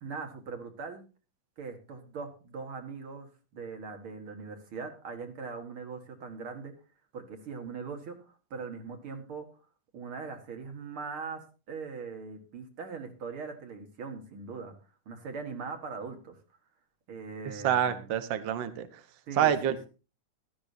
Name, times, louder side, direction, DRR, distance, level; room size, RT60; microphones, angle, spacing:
voice 1, 0.0-1.0 1.6-6.7 7.1-9.5 9.9-11.4 11.7-14.7 15.1-16.4 17.1-18.1 19.3-19.9, right 5 dB, 50° right, 5 dB, 2.2 m, -41 dB
voice 2, 17.6-18.9 19.4-19.9, right 10 dB, 75° right, 11 dB, 1.1 m, -27 dB
17.0 x 12.5 x 2.7 m, 0.33 s
omnidirectional pair, 3.6 m